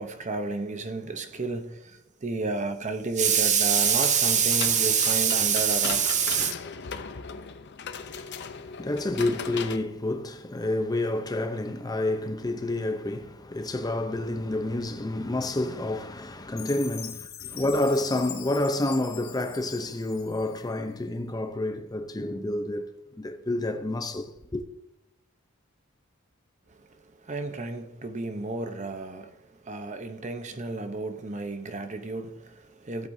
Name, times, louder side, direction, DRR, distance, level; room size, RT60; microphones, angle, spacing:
voice 1, 0.0-6.5 26.8-29.4 29.6-33.1, right 6 dB, 35° right, 0.8 m, -27 dB
sound 1, 3.8-9.8, left 6 dB, 55° left, 0.6 m, -38 dB
voice 2, 8.0-22.9 23.2-24.6, left 1 dB, 20° left, 0.7 m, -29 dB
Chime, 16.6-20.8, left 9 dB, 75° left, 1.5 m, -42 dB
15.5 x 8.3 x 2.7 m
head